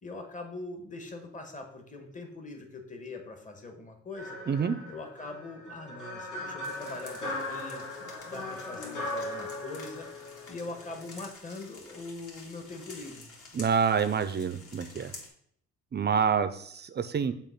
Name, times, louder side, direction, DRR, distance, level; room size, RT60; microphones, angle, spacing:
voice 1, 0.0-4.4 4.9-7.9 8.2-10.1 10.5-13.3, left 3 dB, 25° left, 4 dB, 1.4 m, -42 dB
sound 1, 4.2-11.3, left 2 dB, 70° left, 2.3 m, -39 dB
sound 2, 6.6-15.3, left 3 dB, 50° left, 2.2 m, -50 dB
voice 2, 13.5-15.1 15.9-17.3, right 6 dB, 35° right, 12 dB, 0.6 m, -27 dB
7.0 x 3.0 x 5.9 m, 0.64 s
cardioid pair, 90°, 30 cm